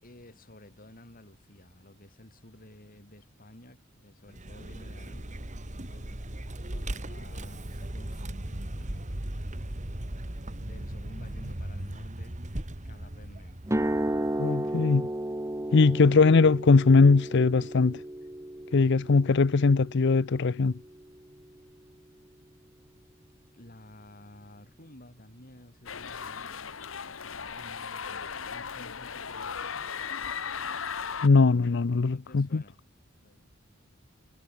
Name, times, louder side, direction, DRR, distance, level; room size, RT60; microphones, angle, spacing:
voice 1, 0.0-5.6 5.9-9.6 10.1-13.6 18.8-19.0 23.5-26.7 27.2-30.2 32.1-32.9 33.2-33.5, left 1 dB, 45° left, 7.7 m, -53 dB
Vehicle, 4.3-14.6, right 1 dB, 40° right, 2.0 m, -38 dB
sound 1, 13.6-21.7, right 1 dB, 15° right, 1.4 m, -34 dB
voice 2, 14.4-15.1 15.7-18.0 18.7-20.7 31.2-32.6, left 4 dB, 60° left, 0.6 m, -21 dB
sound 2, 25.9-31.3, left 6 dB, 75° left, 1.3 m, -36 dB
head